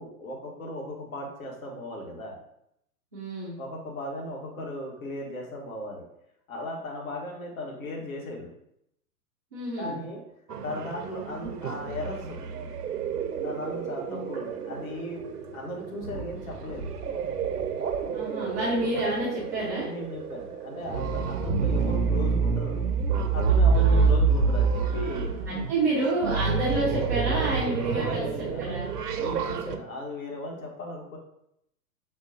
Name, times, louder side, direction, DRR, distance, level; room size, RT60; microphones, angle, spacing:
voice 1, 0.0-2.4 3.6-6.0 6.5-8.5 9.8-10.2 10.6-12.5 13.4-15.2 15.5-16.9 19.8-22.8 23.3-25.3 27.9-28.8 29.2-31.2, left 1 dB, 65° left, -1 dB, 1.4 m, -37 dB
voice 2, 3.1-3.6 9.5-10.0 14.1-14.3 18.1-19.9 23.7-24.2 25.5-28.9, right 1 dB, 15° right, -11 dB, 0.3 m, -29 dB
sound 1, 10.5-29.8, right 5 dB, 90° right, 0.6 m, -28 dB
6.2 x 2.2 x 2.6 m, 0.77 s
figure-of-eight pair, 110°, 46 cm